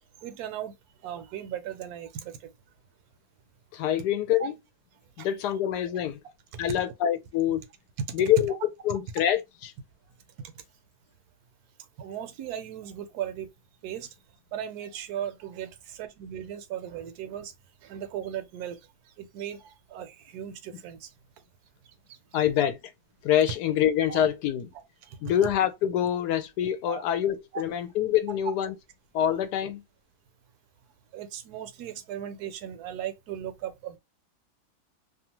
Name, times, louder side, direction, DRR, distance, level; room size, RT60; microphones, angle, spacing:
voice 1, 0.2-0.7 1.0-2.5 5.2-5.3 6.5-6.6 8.0-8.1 8.5-8.6 8.9-9.0 12.0-13.5 13.8-14.1 14.5-17.5 17.8-18.8 19.2-21.1 22.3-22.4 24.1-24.2 24.7-25.2 26.9-27.0 27.5-27.6 31.1-34.0, right 9 dB, 75° right, 1.1 m, -37 dB
voice 2, 3.7-4.5 5.2-6.2 6.6-7.6 8.1-8.5 8.8-9.4 22.3-22.8 23.2-24.7 25.2-28.7 29.1-29.8, left 10 dB, 85° left, 1.2 m, -25 dB
2.8 x 2.4 x 2.9 m
omnidirectional pair, 1.7 m